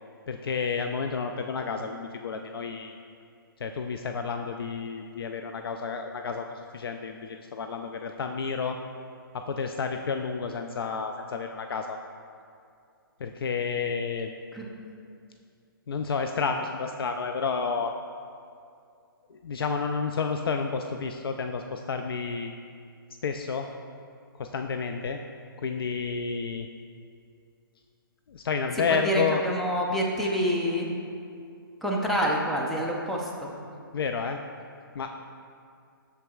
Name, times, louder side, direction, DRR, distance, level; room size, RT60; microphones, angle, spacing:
voice 1, 0.3-3.0 3.6-8.8 9.3-12.0 13.2-14.3 15.9-17.9 19.3-22.5 23.2-23.7 24.4-25.2 25.6-26.7 28.3-29.4 33.9-34.4 34.9-35.1, left 5 dB, 80° left, 5 dB, 0.4 m, -30 dB
voice 2, 29.0-30.9 31.8-33.3, equal, ahead, -2 dB, 0.5 m, -27 dB
7.9 x 6.8 x 2.3 m, 2.4 s
hypercardioid pair, 150°, 12 cm